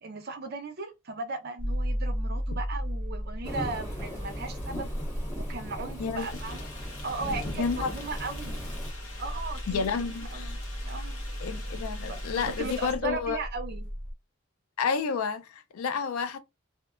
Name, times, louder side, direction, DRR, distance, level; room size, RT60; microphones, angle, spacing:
voice 1, 0.0-4.9 5.4-6.7 7.0-8.6 9.2-10.6 10.9-11.2 12.1-13.9, right 3 dB, 50° right, 0.6 m, -37 dB
sound 1, 1.6-14.1, equal, 5° left, 0.6 m, -36 dB
Thunderstorm / Rain, 3.4-8.9, equal, 35° left, 1.4 m, -37 dB
sound 2, 6.2-12.9, left 2 dB, 70° left, 0.8 m, -44 dB
voice 2, 7.5-7.9 9.7-10.6 11.4-13.4 14.8-16.4, left 5 dB, 90° left, 0.4 m, -30 dB
2.7 x 2.1 x 2.3 m
head